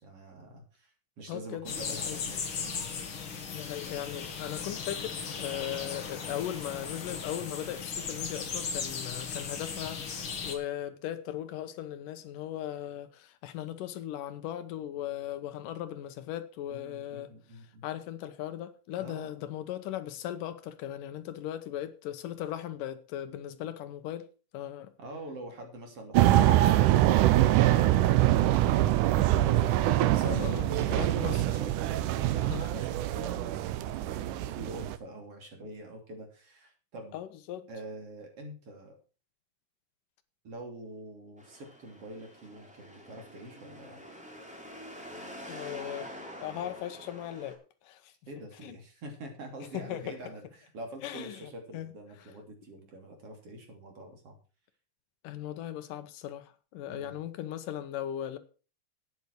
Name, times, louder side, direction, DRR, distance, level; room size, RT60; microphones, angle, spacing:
voice 1, 0.0-2.9 16.7-17.8 19.0-19.3 25.0-37.2 37.7-39.0 40.4-44.0 48.3-54.4 56.9-57.2, right 1 dB, 45° right, 3.9 m, -46 dB
voice 2, 1.3-2.2 3.5-17.3 17.8-24.3 24.5-24.9 30.2-31.4 32.4-32.7 37.1-37.7 45.5-46.1 46.4-48.1 48.6-48.8 49.7-50.0 51.0-51.4 51.7-51.9 55.2-58.4, left 11 dB, 75° left, 2.5 m, -38 dB
sound 1, 1.7-10.6, left 6 dB, 45° left, 2.3 m, -37 dB
sound 2, 26.1-35.0, right 14 dB, 75° right, 2.2 m, -24 dB
sound 3, 41.4-47.5, equal, ahead, 2.5 m, -46 dB
12.0 x 9.5 x 4.7 m
omnidirectional pair, 3.9 m